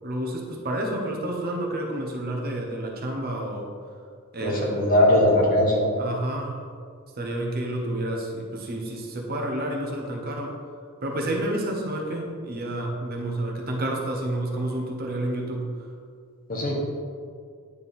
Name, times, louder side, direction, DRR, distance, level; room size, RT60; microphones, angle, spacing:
voice 1, 0.0-3.7 4.3-4.9 6.0-6.6 7.2-10.5 11.0-15.7, right 1 dB, 45° right, 0 dB, 0.9 m, -30 dB
voice 2, 4.4-5.9 16.5-16.8, left 1 dB, 40° left, -2 dB, 1.3 m, -20 dB
9.2 x 4.4 x 3.7 m, 2.1 s
head